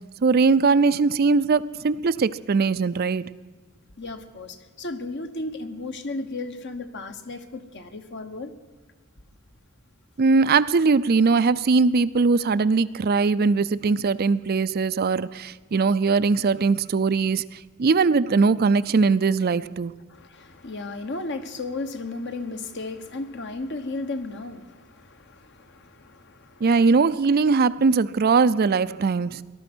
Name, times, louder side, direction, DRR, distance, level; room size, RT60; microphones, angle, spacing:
voice 1, 0.2-3.3 10.2-17.4 17.8-19.9 26.6-29.4, right 4 dB, 45° right, 14 dB, 0.4 m, -20 dB
voice 2, 4.0-8.5 20.1-26.8, left 2 dB, 55° left, 8 dB, 1.3 m, -34 dB
19.0 x 12.0 x 6.2 m, 1.5 s
head